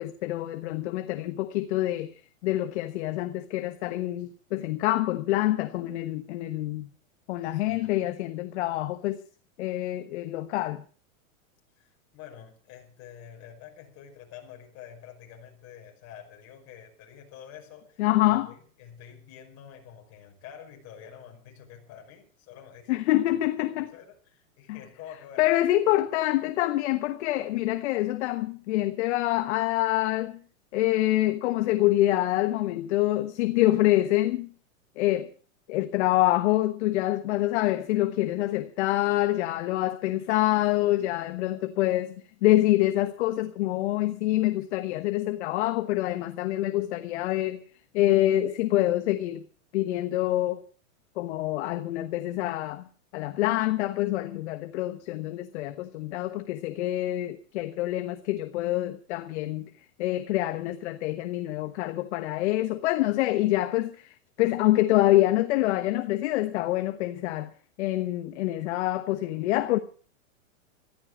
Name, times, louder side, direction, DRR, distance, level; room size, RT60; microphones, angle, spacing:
voice 1, 0.0-2.1 2.4-6.9 7.3-9.2 9.6-10.8 18.0-18.5 22.9-23.9 24.7-24.8 25.4-30.4 30.7-34.5 35.0-35.3 35.7-47.6 47.9-49.5 49.7-50.6 51.2-52.9 53.1-59.7 60.0-67.5 67.8-69.8, left 16 dB, 55° left, 1.2 m, -26 dB
voice 2, 7.5-8.0 11.8-25.5, left 9 dB, 35° left, 5.5 m, -48 dB
14.5 x 14.0 x 6.1 m
supercardioid pair, 145°, 41 cm